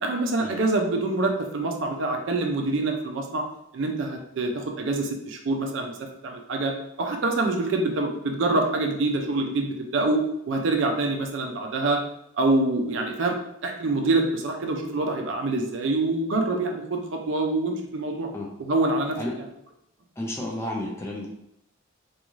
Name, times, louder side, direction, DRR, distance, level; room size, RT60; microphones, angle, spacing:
voice 1, 0.0-3.4 3.7-6.7 7.0-10.2 10.5-12.0 12.4-13.4 13.6-18.3 18.6-19.2, right 2 dB, 65° right, 3 dB, 0.4 m, -25 dB
voice 2, 20.2-21.3, left 1 dB, 15° left, -2 dB, 0.4 m, -31 dB
2.5 x 2.3 x 3.0 m, 0.77 s
head